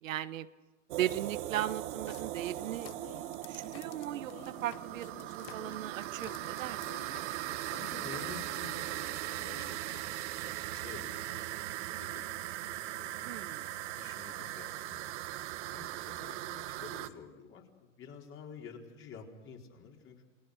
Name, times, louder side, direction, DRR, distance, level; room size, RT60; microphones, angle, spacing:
voice 1, 0.0-0.5 0.9-7.1 13.2-13.7, right 12 dB, 80° right, 12 dB, 1.3 m, -38 dB
sound 1, 0.9-17.1, right 15 dB, 60° right, 1.5 m, -39 dB
sound 2, 2.1-10.0 10.7-10.8 11.0-11.4 12.1-12.2, left 15 dB, 50° left, 1.1 m, -53 dB
voice 2, 7.5-11.4 11.9-15.3 15.7-20.3, left 6 dB, 30° left, 1 dB, 4.3 m, -51 dB
28.5 x 19.5 x 6.5 m, 1.2 s
hypercardioid pair, 125°, 39 cm